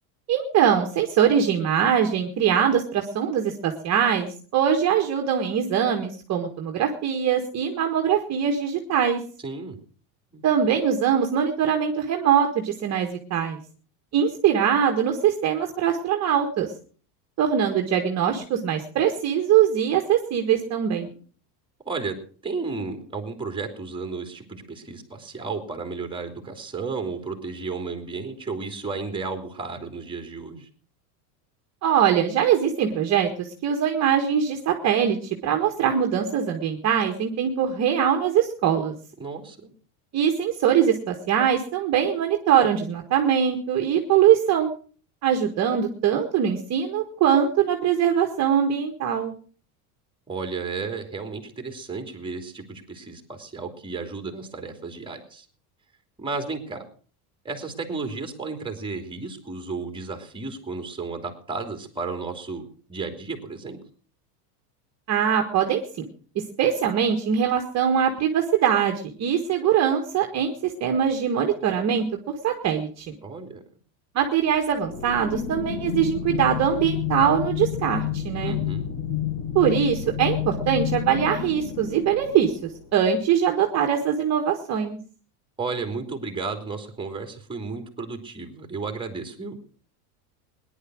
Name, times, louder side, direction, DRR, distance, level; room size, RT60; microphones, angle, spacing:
voice 1, 0.3-9.2 10.4-13.6 14.1-16.7 17.4-21.1 31.8-38.9 40.1-44.7 45.2-49.3 65.1-66.1 66.4-72.0 72.4-73.1 74.2-78.6 79.6-85.0, right 8 dB, 35° right, 4 dB, 1.8 m, -22 dB
voice 2, 9.4-9.8 10.3-10.4 21.8-22.2 22.4-30.7 39.2-39.7 50.3-55.4 56.2-56.8 57.4-63.8 73.2-73.6 78.4-78.9 85.6-89.6, right 4 dB, 10° right, 6 dB, 3.2 m, -33 dB
sound 1, 74.8-83.0, left 10 dB, 50° left, 2.9 m, -30 dB
18.0 x 11.0 x 6.4 m, 0.44 s
supercardioid pair, 140°, 46 cm